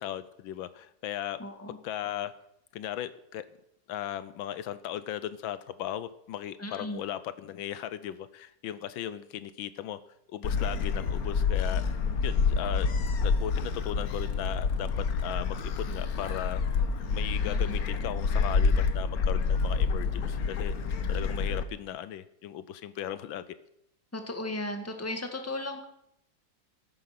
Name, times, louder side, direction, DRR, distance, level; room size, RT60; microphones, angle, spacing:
voice 1, 0.0-1.4 1.7-2.3 2.7-3.5 3.9-10.0 10.3-11.8 12.2-12.9 13.2-20.7 21.1-23.4, left 11 dB, 85° left, 14 dB, 1.5 m, -37 dB
voice 2, 1.4-1.8 6.6-7.0 17.4-17.6 24.1-25.9, left 1 dB, 10° left, 5 dB, 1.5 m, -35 dB
Gull seagull, 10.4-21.6, left 5 dB, 55° left, 1.4 m, -28 dB
13.5 x 11.5 x 5.9 m, 0.76 s
omnidirectional pair, 2.1 m